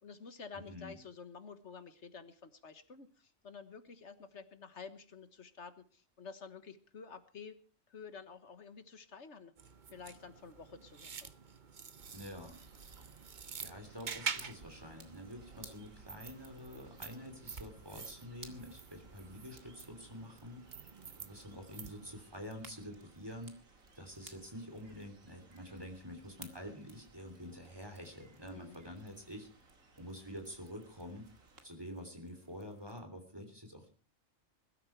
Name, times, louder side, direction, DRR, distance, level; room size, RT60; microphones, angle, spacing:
voice 1, 0.0-7.6 7.9-9.5 9.9-11.3 28.5-28.8, left 5 dB, 60° left, 11 dB, 1.6 m, -50 dB
voice 2, 0.7-1.0 12.1-12.6 13.6-20.6 21.2-23.6 23.9-29.5 30.0-31.3 31.6-33.9, equal, 15° right, 5 dB, 3.3 m, -47 dB
sound 1, 9.6-22.2, right 6 dB, 40° right, 1.0 m, -47 dB
sound 2, 12.0-31.6, right 3 dB, 90° right, 2.7 m, -63 dB
sound 3, 13.8-33.0, right 4 dB, 70° right, 2.4 m, -61 dB
21.0 x 12.5 x 4.5 m, 0.37 s
omnidirectional pair, 1.4 m